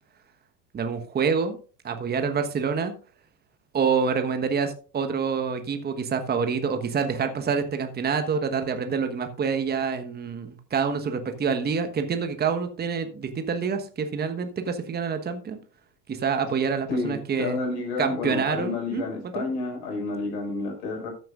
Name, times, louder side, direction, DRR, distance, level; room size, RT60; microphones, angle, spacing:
voice 1, 0.7-1.6 1.8-2.9 3.7-15.6 16.1-17.6 18.0-19.0 19.3-19.5, right 6 dB, 20° right, 7 dB, 1.3 m, -27 dB
voice 2, 16.9-21.1, left 3 dB, 60° left, 3 dB, 5.9 m, -30 dB
14.0 x 9.1 x 2.5 m, 0.38 s
hypercardioid pair, 85°, 48 cm